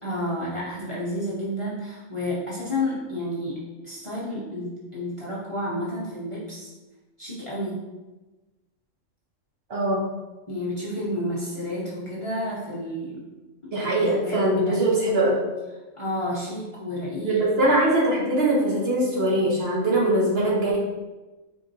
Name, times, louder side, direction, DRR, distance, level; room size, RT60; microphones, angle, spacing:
voice 1, 0.0-3.6 3.8-6.7 7.2-7.8 10.5-13.2 13.6-14.8 15.9-17.4, left 1 dB, 30° left, -8 dB, 0.8 m, -31 dB
voice 2, 9.7-10.0 13.7-15.5 17.2-20.8, right 1 dB, 55° right, -4 dB, 1.1 m, -22 dB
4.3 x 3.9 x 2.6 m, 1.2 s
omnidirectional pair, 1.3 m